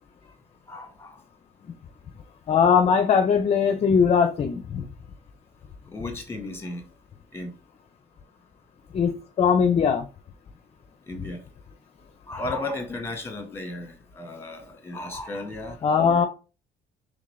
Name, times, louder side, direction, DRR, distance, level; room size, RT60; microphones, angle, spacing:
voice 1, 0.7-1.2 5.9-6.8 7.3-7.5 11.1-11.4 12.3-16.3, left 2 dB, 15° left, 1.5 m, -35 dB
voice 2, 2.5-4.9 8.9-10.1 15.8-16.2, left 6 dB, 35° left, 0.5 m, -20 dB
3.8 x 3.4 x 3.2 m
cardioid pair, 110°, 17 cm